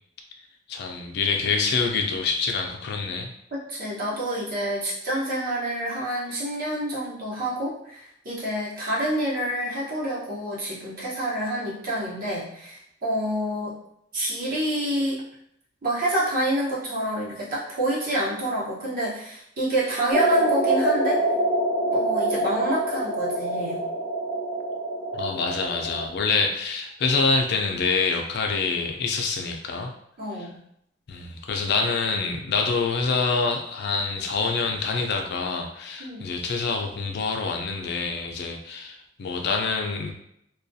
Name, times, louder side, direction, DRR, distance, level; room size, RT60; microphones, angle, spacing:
voice 1, 0.7-3.3 25.1-29.9 31.1-40.1, left 4 dB, 60° left, 3 dB, 0.4 m, -26 dB
voice 2, 3.5-13.7 14.1-15.2 15.8-21.2 21.9-23.8 30.2-30.6 36.0-36.3, right 1 dB, 50° right, -6 dB, 0.9 m, -28 dB
sound 1, 20.1-26.1, right 1 dB, 25° right, 1.1 m, -25 dB
2.3 x 2.2 x 2.6 m, 0.73 s
head